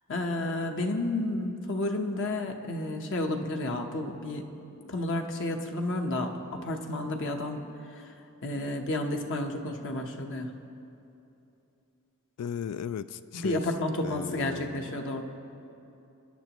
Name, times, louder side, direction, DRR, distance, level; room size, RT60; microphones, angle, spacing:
voice 1, 0.1-4.5 4.9-7.6 7.9-8.1 8.4-10.5 13.3-15.2, left 1 dB, 55° left, 3 dB, 1.0 m, -31 dB
voice 2, 12.4-13.7 14.0-14.9, left 7 dB, 90° left, 13 dB, 0.3 m, -36 dB
28.0 x 10.5 x 3.0 m, 2.8 s
head